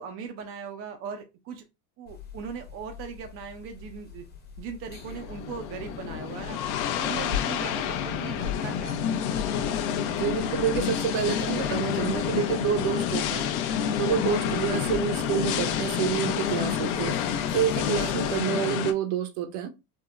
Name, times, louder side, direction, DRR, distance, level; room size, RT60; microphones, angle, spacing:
voice 1, 0.0-1.6 2.0-4.3 4.6-6.6 7.0-9.0 14.6-14.9, right 6 dB, 30° right, 0.4 m, -39 dB
sound 1, 2.1-18.4, left 7 dB, 20° left, 0.8 m, -42 dB
sound 2, 4.9-18.9, left 9 dB, 55° left, 0.6 m, -29 dB
voice 2, 10.1-13.5 14.0-17.2 17.5-19.7, right 8 dB, 55° right, 0.7 m, -28 dB
3.5 x 2.0 x 2.4 m
supercardioid pair, 105°, 48 cm